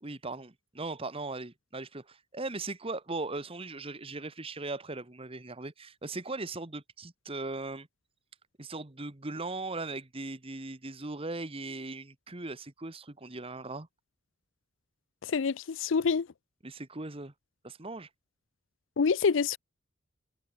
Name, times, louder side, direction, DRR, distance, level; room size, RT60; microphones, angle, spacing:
voice 1, 0.0-7.9 8.6-13.9 16.6-17.3 17.6-18.1, right 2 dB, 30° right, 1.4 m, -39 dB
voice 2, 15.2-16.3 19.0-19.6, left 5 dB, 65° left, 0.5 m, -26 dB
head